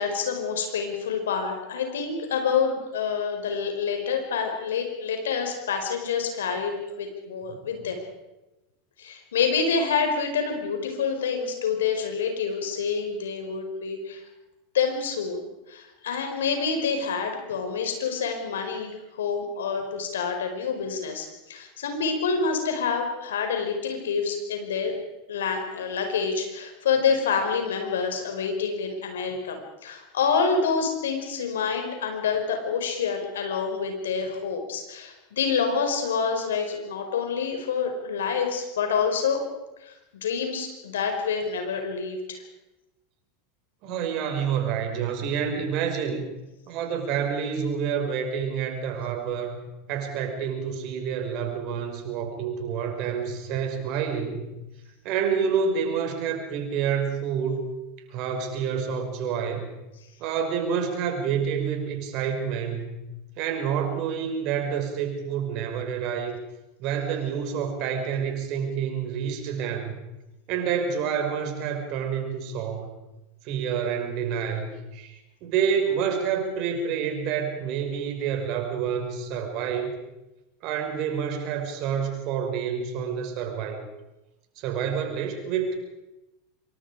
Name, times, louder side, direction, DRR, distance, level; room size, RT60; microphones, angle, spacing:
voice 1, 0.0-8.0 9.0-14.2 14.7-24.9 25.3-39.4 39.8-39.9 40.2-42.4, left 5 dB, 75° left, 4 dB, 4.9 m, -27 dB
voice 2, 7.5-7.9 43.8-46.2 46.7-49.6 49.9-54.5 55.0-57.7 58.1-59.7 60.2-63.0 63.4-66.4 66.8-69.9 70.5-73.0 73.4-80.0 80.6-83.8 84.6-85.7, right 7 dB, 50° right, 4 dB, 5.4 m, -28 dB
25.5 x 23.5 x 5.0 m, 0.99 s
hypercardioid pair, 85°, 0 cm